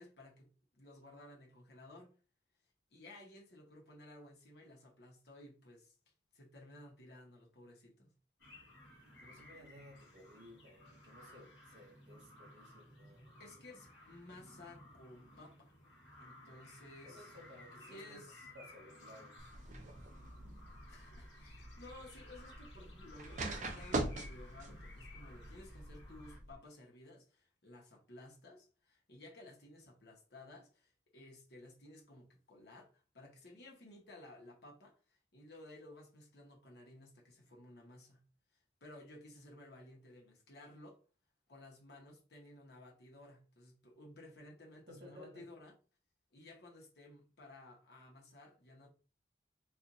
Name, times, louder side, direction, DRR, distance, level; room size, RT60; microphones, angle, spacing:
voice 1, 0.0-2.1 2.9-5.9 6.3-8.1 13.4-15.7 16.2-17.3 17.9-18.5 20.9-38.2 38.8-41.0 41.5-45.7 46.3-48.9, left 1 dB, 65° left, 1.1 m, -56 dB
sound 1, 8.4-26.4, left 1 dB, 85° left, 1.5 m, -58 dB
voice 2, 9.2-13.4 17.0-19.5 44.9-45.4, left 1 dB, 80° right, 1.6 m, -57 dB
sound 2, 19.4-26.5, right 2 dB, 45° right, 0.5 m, -43 dB
4.4 x 2.5 x 2.6 m
head